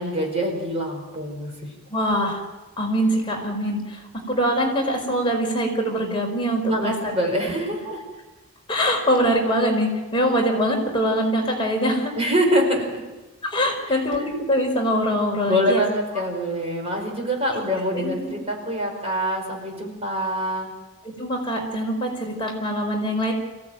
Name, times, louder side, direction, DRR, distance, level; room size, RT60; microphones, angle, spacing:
voice 1, 0.0-1.7 6.6-8.0 12.1-13.0 13.9-14.0 15.5-20.7, equal, 30° right, 2 dB, 4.8 m, -25 dB
voice 2, 1.9-2.4 2.8-6.9 7.4-7.5 7.8-7.9 8.7-12.1 13.4-15.8 18.0-18.2 21.2-23.3, equal, 25° left, 0 dB, 4.9 m, -23 dB
26.5 x 16.5 x 9.2 m, 1.1 s
head